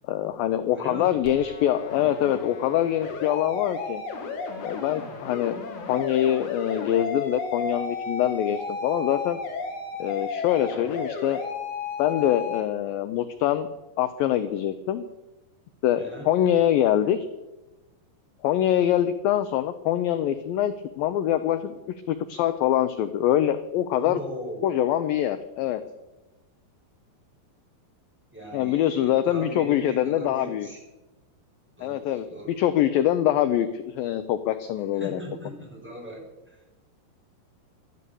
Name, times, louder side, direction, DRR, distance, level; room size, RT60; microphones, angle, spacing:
voice 1, 0.1-4.0 4.6-5.6 5.9-9.4 10.0-11.4 12.0-13.7 14.0-15.0 15.8-17.3 18.4-21.8 22.1-24.2 24.6-25.8 28.5-30.7 31.8-32.3 32.6-35.2, left 11 dB, 80° left, 11 dB, 2.1 m, -24 dB
voice 2, 0.7-1.2 16.0-16.3 24.0-24.7 28.3-30.8 31.8-32.5 34.9-36.6, equal, ahead, -2 dB, 6.0 m, -39 dB
sound 1, 1.2-12.6, left 4 dB, 50° left, 3.1 m, -33 dB
16.5 x 12.0 x 7.0 m, 1.0 s
omnidirectional pair, 4.9 m